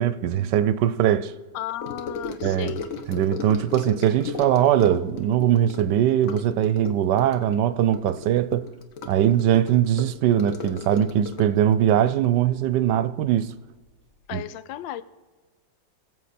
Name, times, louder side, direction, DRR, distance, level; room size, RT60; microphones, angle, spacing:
voice 1, 0.0-1.3 2.4-2.7 3.1-8.7 9.1-13.5 14.3-14.4, right 10 dB, 75° right, 1.1 m, -21 dB
voice 2, 1.5-2.8 14.3-15.0, left 12 dB, 90° left, 1.3 m, -34 dB
Gurgling / Sink (filling or washing) / Trickle dribble, 1.8-13.5 13.7-14.1 14.3-14.4, left 4 dB, 50° left, 1.2 m, -36 dB
22.0 x 7.5 x 4.2 m
omnidirectional pair, 2.0 m